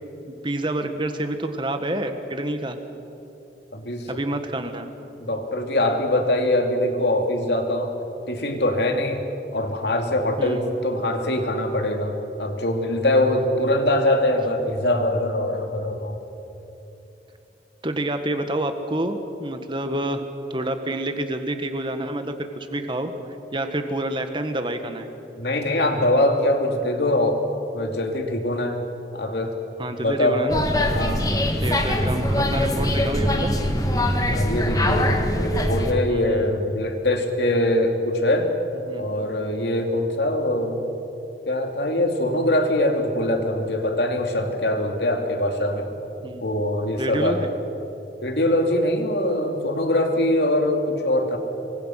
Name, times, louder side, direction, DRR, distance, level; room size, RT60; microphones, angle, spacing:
voice 1, 0.2-2.8 4.1-4.9 10.4-10.6 17.8-20.2 20.5-23.1 23.5-25.1 29.8-30.6 31.6-33.5 36.1-36.6 38.8-39.0 46.2-46.4 47.0-47.5, right 1 dB, 25° right, 7 dB, 1.6 m, -28 dB
voice 2, 3.7-4.1 5.2-7.9 8.3-9.2 9.5-16.2 25.4-27.4 27.7-28.8 29.1-29.6 30.0-30.4 30.9-31.2 34.2-38.5 39.0-40.8 41.5-45.9 46.4-47.4 48.2-51.4, left 1 dB, 70° left, 4 dB, 2.7 m, -23 dB
sound 1, 30.5-35.9, left 1 dB, 20° left, 1.7 m, -22 dB
27.0 x 23.5 x 6.0 m, 3.0 s
head